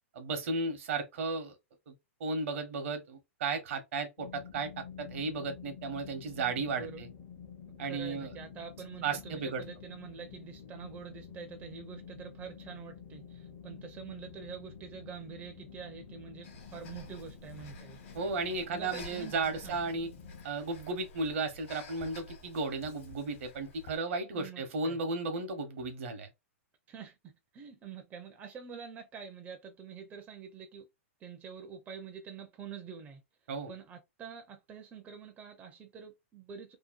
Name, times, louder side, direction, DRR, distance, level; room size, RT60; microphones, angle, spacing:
voice 1, 0.1-1.5 1.9-2.0 2.2-7.1 7.8-8.3 9.0-9.6 18.1-20.1 20.4-26.3 33.5-33.7, right 3 dB, 65° right, 0.9 m, -34 dB
sound 1, 4.2-20.5, left 7 dB, 45° left, 0.6 m, -50 dB
voice 2, 6.6-7.0 7.8-18.0 18.7-19.3 19.6-19.8 24.3-25.0 26.9-30.9 31.2-33.2 33.7-36.8, right 6 dB, 20° right, 0.5 m, -46 dB
Breathing, 16.4-24.0, left 2 dB, 65° left, 1.1 m, -51 dB
2.7 x 2.2 x 2.4 m
hypercardioid pair, 130°, 7 cm